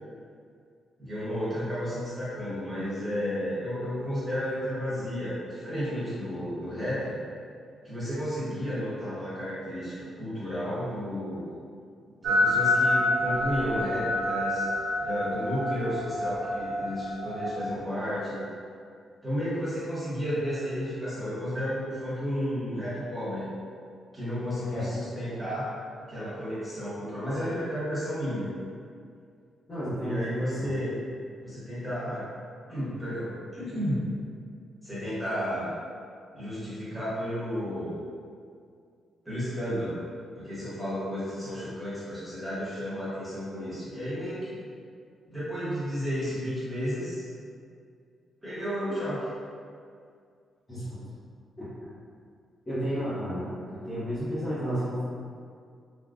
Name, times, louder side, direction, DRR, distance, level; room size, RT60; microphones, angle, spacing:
voice 1, 1.0-7.2 7.8-11.5 12.2-14.7 15.0-18.4 19.2-23.5 24.1-28.5 30.0-31.0 31.4-32.3 32.7-34.1 34.8-35.7 36.3-38.0 39.2-40.0 40.3-44.7 45.3-47.3 48.4-49.3, equal, 5° right, -12 dB, 1.2 m, -32 dB
sound 1, 12.2-17.6, left 1 dB, 60° right, 0.4 m, -27 dB
voice 2, 29.7-30.7 50.7-50.9 52.7-55.0, equal, 20° left, -14 dB, 0.8 m, -31 dB
3.4 x 2.2 x 2.5 m, 2.2 s
wide cardioid pair, 170°, 0 cm